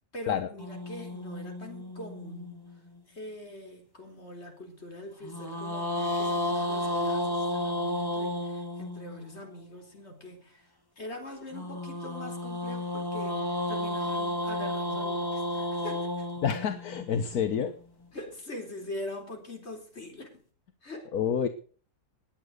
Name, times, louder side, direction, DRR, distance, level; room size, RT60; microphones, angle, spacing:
voice 1, 0.1-2.8 3.1-16.3 18.1-20.4 20.8-21.1, left 1 dB, 40° left, 3 dB, 4.1 m, -43 dB
sound 1, 0.6-3.0 5.2-9.4 11.5-17.7, left 1 dB, 15° left, 2.7 m, -32 dB
voice 2, 16.4-17.8 21.1-21.5, left 7 dB, 70° left, 10 dB, 1.5 m, -28 dB
19.5 x 8.9 x 6.5 m, 0.42 s
omnidirectional pair, 1.7 m